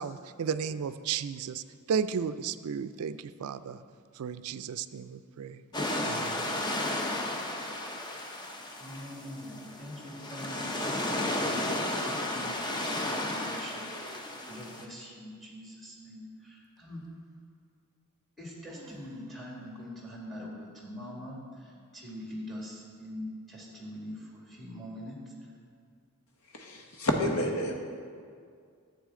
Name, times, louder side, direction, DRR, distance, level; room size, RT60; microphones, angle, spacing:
voice 1, 0.0-1.6 1.9-3.8 4.2-5.6 6.0-6.5, right 7 dB, 70° right, 13 dB, 0.4 m, -34 dB
sound 1, 5.7-14.8, left 1 dB, 20° left, 0.7 m, -33 dB
voice 2, 8.8-17.0 18.4-25.5, left 1 dB, ahead, -4 dB, 2.0 m, -44 dB
sound 2, 12.8-13.4 13.9-14.8 16.8-16.9 18.7-19.5, equal, 15° right, 0.8 m, -51 dB
voice 3, 26.5-27.7, left 1 dB, 70° left, 2 dB, 1.2 m, -29 dB
11.5 x 8.4 x 3.7 m, 2.2 s
head